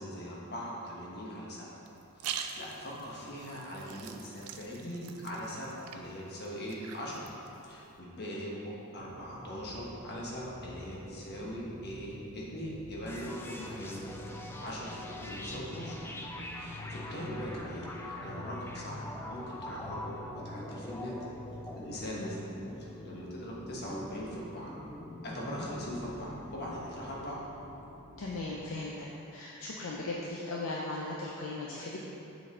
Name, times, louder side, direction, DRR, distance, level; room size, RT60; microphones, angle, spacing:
voice 1, 0.0-1.8 2.1-7.3 7.6-14.0 14.6-16.0 16.5-19.0 19.3-21.2 21.7-24.8 25.2-27.4, equal, 50° left, -5 dB, 1.1 m, -41 dB
sound 1, 1.8-8.0, right 8 dB, 70° right, 0.4 m, -45 dB
sound 2, 9.0-28.7, left 1 dB, 15° right, 0.8 m, -48 dB
sound 3, 13.1-26.7, left 1 dB, 10° left, 0.3 m, -44 dB
voice 2, 28.2-32.0, left 2 dB, 65° left, -4 dB, 0.5 m, -38 dB
6.8 x 4.1 x 3.6 m, 2.9 s
head